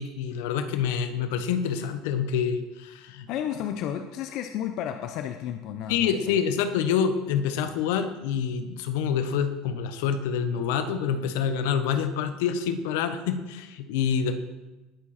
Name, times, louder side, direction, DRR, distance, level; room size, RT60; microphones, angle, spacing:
voice 1, 0.0-3.3 5.9-14.4, left 7 dB, 80° left, 9 dB, 1.1 m, -27 dB
voice 2, 3.3-6.5, left 10 dB, 60° left, 7 dB, 0.8 m, -32 dB
19.5 x 7.5 x 4.3 m, 1.1 s
supercardioid pair, 105°, 0 cm